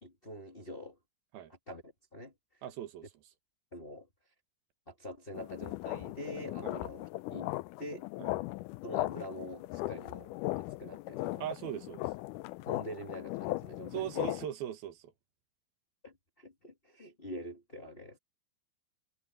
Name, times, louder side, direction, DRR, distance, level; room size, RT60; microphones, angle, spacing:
voice 1, 0.0-1.0 1.7-2.3 3.7-4.1 4.9-8.1 8.8-11.4 12.6-14.4 16.0-18.2, equal, 20° left, 1.5 m, -45 dB
voice 2, 2.6-3.0 6.6-6.8 8.2-8.3 11.4-12.1 13.9-15.1, right 11 dB, 85° right, 3.4 m, -39 dB
sound 1, 5.3-14.5, left 18 dB, 85° left, 1.8 m, -38 dB
omnidirectional pair, 4.2 m